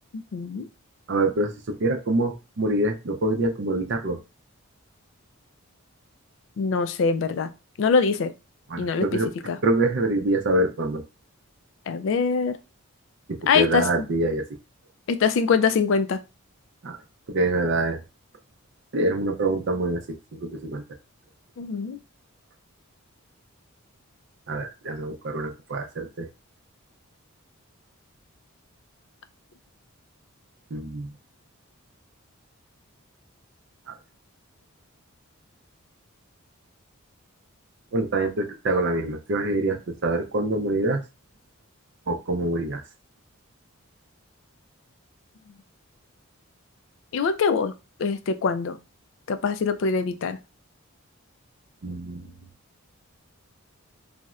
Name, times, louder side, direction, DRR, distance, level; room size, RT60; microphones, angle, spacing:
voice 1, 0.1-0.7 6.6-7.5 7.8-8.3 8.8-9.0 9.5-9.6 11.9-12.6 13.5-13.8 15.1-16.2 21.6-22.0 47.1-47.7 48.0-48.8 49.3-50.4, left 5 dB, 60° left, 10 dB, 0.3 m, -23 dB
voice 2, 1.1-4.2 8.7-9.3 9.6-11.0 13.3-14.4 16.8-17.0 17.3-18.0 18.9-20.0 20.3-20.8 24.5-26.3 30.7-31.1 33.9-34.0 37.9-41.0 42.1-42.8 51.8-52.4, right 2 dB, 55° right, 5 dB, 0.5 m, -25 dB
4.0 x 2.1 x 2.4 m, 0.29 s
head